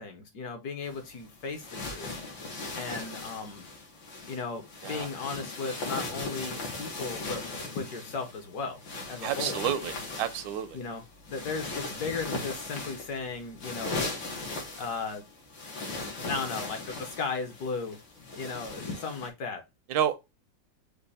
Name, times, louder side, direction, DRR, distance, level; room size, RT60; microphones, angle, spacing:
voice 1, 0.0-2.1 2.7-3.7 4.3-7.4 7.7-8.8 9.1-9.6 10.7-14.1 14.8-15.2 16.3-18.0 18.3-19.6, left 4 dB, 65° left, 1.2 m, -36 dB
sound 1, 0.8-19.3, left 3 dB, 85° left, 2.0 m, -38 dB
voice 2, 9.2-10.8 19.9-20.2, right 10 dB, 85° right, 1.3 m, -30 dB
5.3 x 2.3 x 4.0 m
omnidirectional pair, 2.0 m